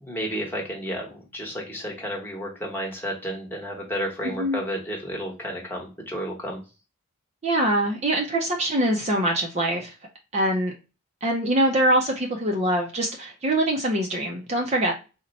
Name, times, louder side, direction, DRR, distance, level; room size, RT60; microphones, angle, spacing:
voice 1, 0.0-6.6, equal, 10° left, -2 dB, 1.0 m, -32 dB
voice 2, 4.2-4.6 7.4-9.9 10.3-10.7 11.2-15.0, right 1 dB, 30° right, 1 dB, 0.5 m, -23 dB
3.9 x 2.1 x 3.9 m, 0.31 s
head